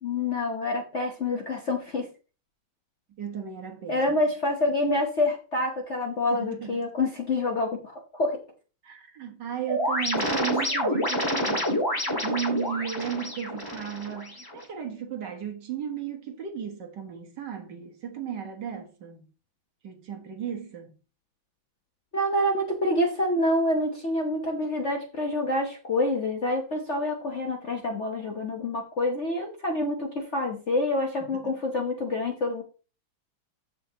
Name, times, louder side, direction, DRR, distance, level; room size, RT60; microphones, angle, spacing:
voice 1, 0.0-2.1 3.9-8.4 22.1-32.6, left 1 dB, 45° left, 1.0 m, -27 dB
voice 2, 3.2-4.2 6.3-6.9 8.8-19.3 19.8-20.9 31.4-31.5, right 8 dB, 55° right, 1.8 m, -35 dB
sound 1, 9.7-14.7, equal, 10° left, 1.6 m, -28 dB
14.0 x 5.5 x 2.9 m
omnidirectional pair, 2.3 m